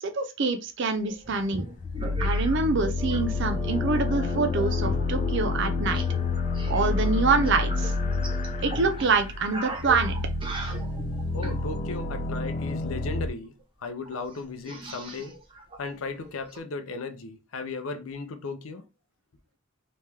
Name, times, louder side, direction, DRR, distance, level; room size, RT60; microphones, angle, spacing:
voice 1, 0.0-1.6 2.2-6.0 6.7-7.9 8.6-10.2, right 4 dB, 60° right, 0.6 m, -26 dB
sound 1, 1.0-3.2 3.5-4.0 4.5-6.1 6.4-11.6 13.3-13.4 13.6-13.7 14.1-16.6, right 2 dB, 25° right, 0.8 m, -40 dB
sound 2, 1.8-13.3, left 3 dB, 35° left, 0.3 m, -29 dB
sound 3, 3.0-8.6, right 1 dB, 5° left, 1.2 m, -43 dB
voice 2, 11.3-13.5 13.8-15.4 15.8-18.8, left 3 dB, 85° left, 0.6 m, -36 dB
3.2 x 3.0 x 3.4 m
head